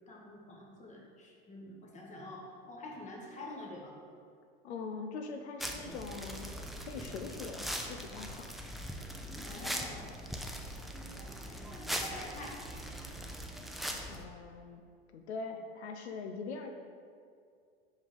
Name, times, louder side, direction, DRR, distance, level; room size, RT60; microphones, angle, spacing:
voice 1, 0.1-3.9 9.4-10.1 11.2-12.6, left 1 dB, 20° left, -2 dB, 1.6 m, -47 dB
voice 2, 4.6-6.5 6.8-8.5 14.1-14.8 15.1-16.7, left 4 dB, 85° left, 5 dB, 0.6 m, -42 dB
sound 1, 5.6-14.2, equal, ahead, 0.5 m, -41 dB
5.5 x 4.9 x 5.1 m, 2.3 s
hypercardioid pair, 95°, 32 cm